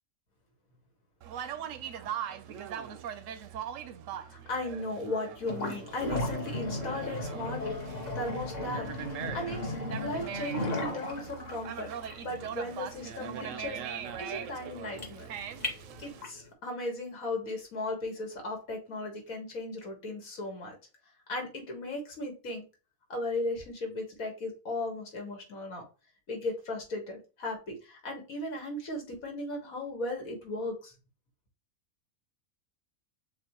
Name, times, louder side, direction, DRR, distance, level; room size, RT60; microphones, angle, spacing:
Conversation, 1.2-16.2, right 9 dB, 70° right, 0.9 m, -41 dB
voice 1, 4.2-7.6 8.1-8.9 9.3-11.9 12.2-13.8 14.2-15.3 16.0-20.7 21.3-22.6 23.1-25.8 26.3-30.9, left 2 dB, 70° left, 2 dB, 1.9 m, -36 dB
sound 1, 5.4-16.4, left 2 dB, 35° left, 0.9 m, -36 dB
6.9 x 2.4 x 3.0 m, 0.32 s
omnidirectional pair, 1.5 m